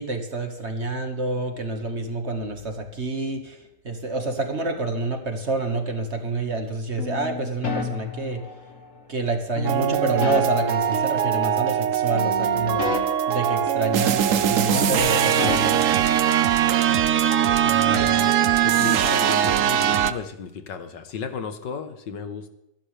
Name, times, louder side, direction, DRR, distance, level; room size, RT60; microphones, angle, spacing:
voice 1, 0.0-3.6 3.8-8.4 9.1-12.9 13.3-15.9, right 2 dB, 40° right, 5 dB, 2.0 m, -28 dB
sound 1, 7.0-9.0 9.6-11.9 12.1-14.5 14.7-16.8, left 4 dB, 45° left, 2.3 m, -32 dB
sound 2, 9.6-20.1, right 10 dB, 60° right, 1.0 m, -21 dB
voice 2, 17.6-22.5, left 6 dB, 85° left, 8 dB, 2.0 m, -34 dB
24.0 x 11.5 x 3.5 m, 0.86 s
omnidirectional pair, 1.9 m